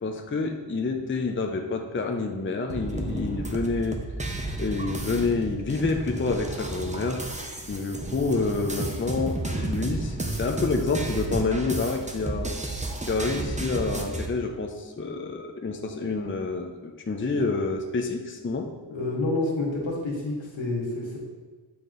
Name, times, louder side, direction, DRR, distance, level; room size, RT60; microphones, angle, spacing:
voice 1, 0.0-4.0 4.6-7.2 7.7-12.5 13.1-18.7, left 3 dB, 25° left, 3 dB, 0.6 m, -28 dB
sound 1, 2.7-14.3, right 2 dB, 15° right, 0.7 m, -32 dB
voice 2, 18.9-21.2, left 2 dB, 80° left, -3 dB, 1.6 m, -28 dB
8.6 x 3.0 x 3.9 m, 1.4 s
wide cardioid pair, 50°, 45 cm